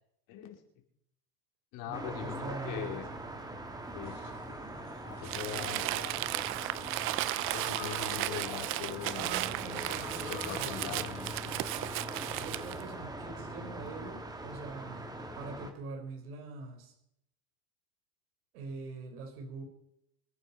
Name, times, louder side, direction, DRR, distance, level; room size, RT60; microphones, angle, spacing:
voice 1, 0.3-0.6 1.7-3.1 3.9-4.6 5.2-5.8 7.5-10.0 10.3-11.6, left 11 dB, 45° left, 2 dB, 4.5 m, -42 dB
sound 1, 1.9-15.7, right 1 dB, 10° right, 2.0 m, -42 dB
voice 2, 2.4-3.0 9.1-11.0 12.4-16.9 18.5-19.6, right 3 dB, 75° right, 3 dB, 5.0 m, -44 dB
sound 2, 4.0-10.7, left 13 dB, 65° left, 2.3 m, -51 dB
Crumpling crinkling, 5.2-12.8, right 16 dB, 30° right, 0.5 m, -35 dB
25.5 x 9.7 x 5.8 m, 0.78 s
supercardioid pair, 155°, 44 cm